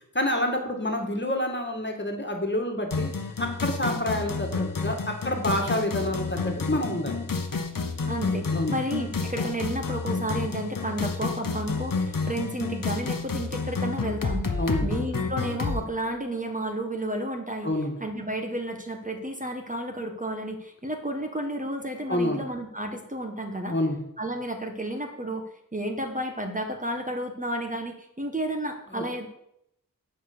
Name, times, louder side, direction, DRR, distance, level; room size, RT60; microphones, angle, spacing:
voice 1, 0.1-3.1 3.4-7.2 8.5-8.8 14.6-14.9 17.6-17.9 22.1-22.4 23.7-24.0 28.9-29.0, left 1 dB, 35° left, 2 dB, 1.9 m, -28 dB
sound 1, 2.9-15.8, left 4 dB, 90° left, 0.9 m, -30 dB
voice 2, 8.1-14.6 14.8-17.7 18.0-23.8 24.2-29.3, right 1 dB, 25° right, 3 dB, 1.3 m, -32 dB
9.4 x 5.0 x 6.8 m, 0.77 s
wide cardioid pair, 45°, 32 cm